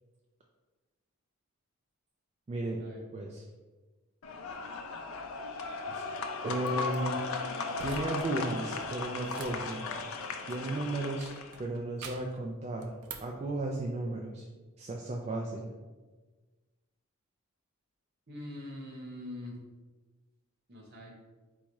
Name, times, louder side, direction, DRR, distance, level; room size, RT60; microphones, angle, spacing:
voice 1, 2.5-2.8 3.1-3.4 5.9-6.0 6.4-7.2 7.8-9.9 10.5-11.3 11.6-12.9 13.2-14.5 14.8-15.7, right 2 dB, 30° right, -1 dB, 0.3 m, -34 dB
sound 1, 4.2-11.6, left 4 dB, 70° left, 0.4 m, -37 dB
sound 2, 6.6-7.0 7.7-8.3 8.6-10.8 11.2-12.4 12.8-13.4, right 5 dB, 90° right, 0.5 m, -47 dB
voice 2, 18.3-19.6 20.7-21.2, left 1 dB, 50° right, -2 dB, 1.1 m, -43 dB
4.0 x 2.3 x 4.6 m, 1.3 s
head